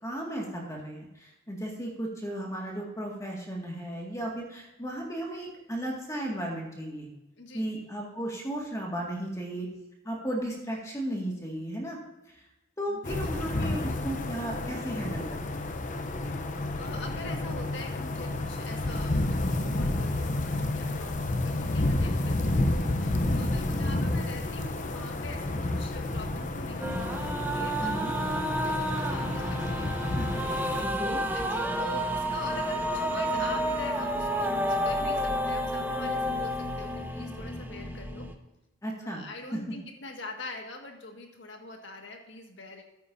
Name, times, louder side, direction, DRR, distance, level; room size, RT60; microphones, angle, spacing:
voice 1, 0.0-7.1 7.5-9.7 10.0-12.0 12.3-12.4 12.8-15.7 27.8-28.1 30.2-31.2 38.8-39.2 39.5-39.6, right 1 dB, 15° left, -1 dB, 2.0 m, -35 dB
voice 2, 7.4-7.7 12.9-13.5 16.8-29.9 30.7-30.8 31.3-38.3 39.0-42.8, left 2 dB, 70° left, 3 dB, 1.8 m, -43 dB
sound 1, 13.0-30.8, left 2 dB, 40° left, 0.7 m, -30 dB
sound 2, 26.8-38.4, equal, 10° right, 0.8 m, -30 dB
14.0 x 9.3 x 2.7 m, 0.96 s
head